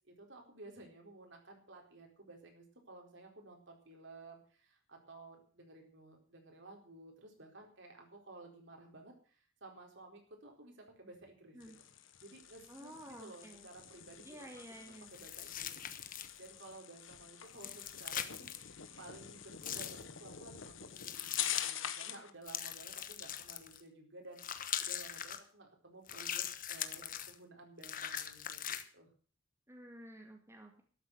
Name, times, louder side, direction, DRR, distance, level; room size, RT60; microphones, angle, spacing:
voice 1, 0.1-11.7 12.2-14.5 14.8-15.7 16.0-29.1, right 2 dB, 60° right, 2 dB, 4.2 m, -55 dB
sound 1, 11.6-22.3, left 10 dB, 70° left, 1.3 m, -45 dB
voice 2, 12.7-13.7 14.2-15.1 29.7-30.8, right 1 dB, 15° right, 2 dB, 1.9 m, -52 dB
sound 2, 15.1-16.5 17.5-18.6 19.6-20.0 21.0-21.7 22.5-23.8 24.4-25.4 26.1-27.3 27.8-28.8, left 10 dB, 45° left, 1.1 m, -41 dB
13.0 x 8.2 x 7.8 m, 0.42 s
head